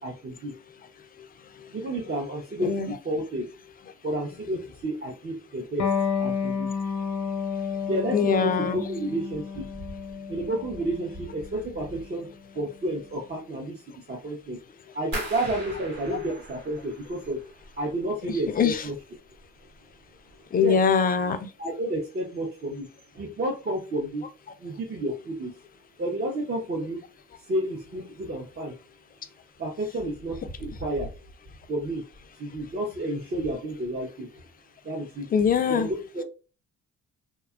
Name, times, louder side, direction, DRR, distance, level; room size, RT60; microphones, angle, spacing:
voice 1, 0.0-0.5 1.7-3.5 4.0-6.7 7.9-9.7 10.3-12.3 12.5-14.6 14.9-17.4 17.8-18.9 20.6-20.8 21.6-22.9 23.1-24.2 24.6-25.5 26.0-27.0 27.5-28.8 29.6-31.1 31.7-32.1 32.3-34.4 34.8-35.3 35.7-36.2, right 1 dB, 35° right, -1 dB, 0.6 m, -31 dB
voice 2, 2.6-3.0 8.1-8.8 18.5-18.8 20.5-21.4 35.3-35.9, left 6 dB, 30° left, 9 dB, 0.3 m, -22 dB
Electric guitar, 5.8-12.9, left 6 dB, 85° left, 0.7 m, -31 dB
sound 1, 15.1-18.0 18.3-19.0 19.3-19.8 20.2-20.3, right 1 dB, 85° right, 1.1 m, -39 dB
2.7 x 2.2 x 2.3 m, 0.34 s
cardioid pair, 90°, 30 cm